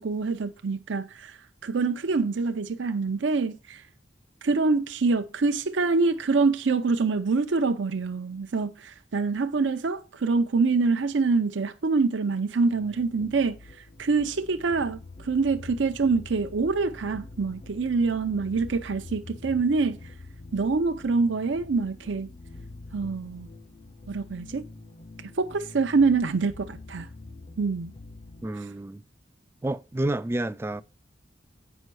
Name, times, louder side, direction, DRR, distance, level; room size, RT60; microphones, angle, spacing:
voice 1, 0.0-3.8 4.4-13.6 14.0-20.0 20.5-22.3 22.9-23.5 24.1-24.7 25.2-27.1 27.6-27.9, right 4 dB, 70° right, 0.6 m, -25 dB
sound 1, 12.7-28.5, left 2 dB, 35° left, 0.5 m, -45 dB
voice 2, 28.4-29.0 29.6-30.8, right 1 dB, 15° right, 0.3 m, -29 dB
8.0 x 5.3 x 4.7 m
head